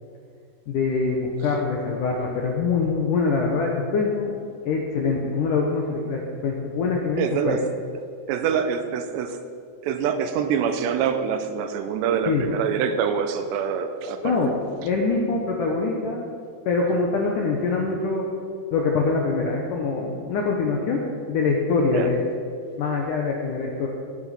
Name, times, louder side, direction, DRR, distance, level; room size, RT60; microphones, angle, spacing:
voice 1, 0.7-4.4 4.7-7.6 12.3-12.5 14.2-16.3 16.7-18.2 18.7-22.2 22.8-23.9, left 4 dB, 75° left, 0 dB, 1.9 m, -24 dB
voice 2, 7.2-7.7 8.3-9.4 9.8-14.4 21.9-22.1, right 7 dB, 85° right, 8 dB, 2.9 m, -25 dB
19.0 x 6.4 x 5.7 m, 2.3 s
omnidirectional pair, 5.1 m